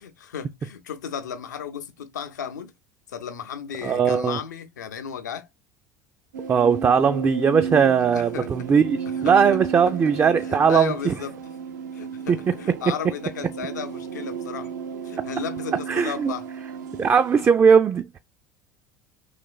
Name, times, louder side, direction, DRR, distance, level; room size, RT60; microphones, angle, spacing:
voice 1, 0.0-2.7 3.1-5.5 8.1-8.5 9.2-9.4 10.5-11.4 11.9-14.7 15.0-16.4, left 7 dB, 80° left, 0.5 m, -34 dB
voice 2, 3.8-4.4 6.5-11.1 12.3-12.9 15.9-16.3 17.0-18.2, right 6 dB, 25° right, 0.3 m, -19 dB
sound 1, 6.3-17.5, right 6 dB, 80° right, 0.5 m, -33 dB
3.2 x 3.0 x 2.2 m
hypercardioid pair, 70°, 9 cm